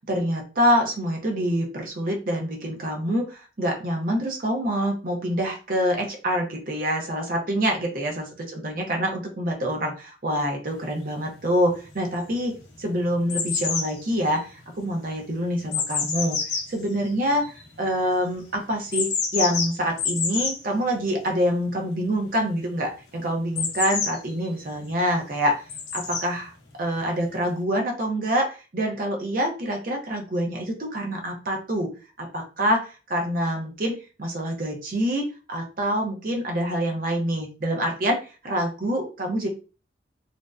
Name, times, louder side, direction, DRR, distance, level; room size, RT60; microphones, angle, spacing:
voice 1, 0.1-12.5 12.8-16.4 16.7-17.4 17.8-25.6 25.9-26.5 26.8-31.9 32.2-38.2 38.4-39.5, equal, 50° right, 2 dB, 0.6 m, -26 dB
sound 1, 11.0-11.1 11.7-12.3 12.6-17.9 18.8-20.6 23.6-24.6 25.7-26.3 27.2-27.3, left 5 dB, 75° left, 0.6 m, -28 dB
2.5 x 2.1 x 2.3 m, 0.33 s
head